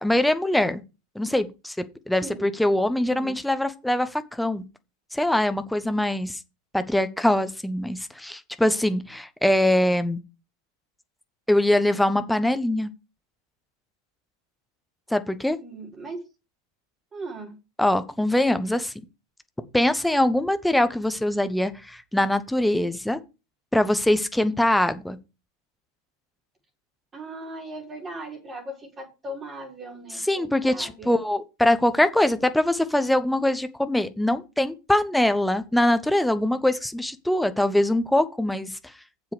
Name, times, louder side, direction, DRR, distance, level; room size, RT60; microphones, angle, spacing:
voice 1, 0.0-0.8 1.1-1.8 2.1-4.6 5.1-6.4 6.7-10.2 11.5-12.9 15.1-15.6 17.8-18.9 19.7-23.2 23.7-25.2 30.3-38.9, left 1 dB, 5° left, 0.9 m, -23 dB
voice 2, 3.0-3.3 15.6-16.2 17.1-17.6 27.1-31.2, right 2 dB, 15° right, 5.1 m, -38 dB
8.5 x 7.4 x 4.9 m
figure-of-eight pair, 90°, 0 cm